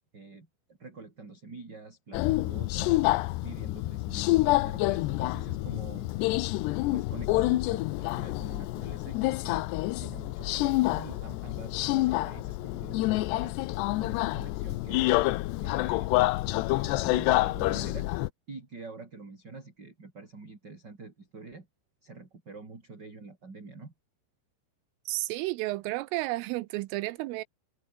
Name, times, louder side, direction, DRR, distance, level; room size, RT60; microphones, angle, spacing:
voice 1, 0.1-3.1 3.4-6.1 6.9-9.6 10.0-13.6 14.0-15.1 15.6-16.1 16.8-18.1 18.5-21.7 22.0-23.9, right 3 dB, 20° right, 4.2 m, -46 dB
Subway metro underground, 2.1-18.3, left 19 dB, 80° left, 2.5 m, -28 dB
voice 2, 25.1-27.4, right 19 dB, 85° right, 3.4 m, -32 dB
omnidirectional pair, 5.8 m